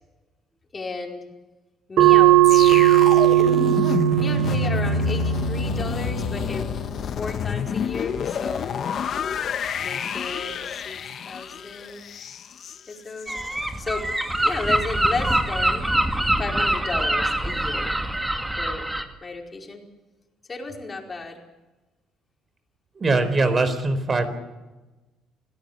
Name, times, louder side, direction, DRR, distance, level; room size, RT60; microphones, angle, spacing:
voice 1, 0.7-1.2 1.9-3.1 4.2-6.7 7.1-8.9 9.8-11.0 11.2-12.0 12.9-13.4 13.8-14.1 14.4-15.9 16.4-17.9 18.6-18.9 19.2-19.8 20.5-21.4, left 3 dB, 25° left, 1 dB, 4.9 m, -33 dB
sound 1, 2.0-7.1, right 14 dB, 65° right, 2.7 m, -19 dB
sound 2, 2.4-13.5 13.9-14.1, left 8 dB, 50° left, 1.3 m, -29 dB
Gull seagull, 13.3-19.0, right 1 dB, 10° right, 2.2 m, -24 dB
voice 2, 23.0-24.3, right 3 dB, 30° right, 10 dB, 4.4 m, -21 dB
26.0 x 17.0 x 8.2 m, 1.1 s
cardioid pair, 110°, 0 cm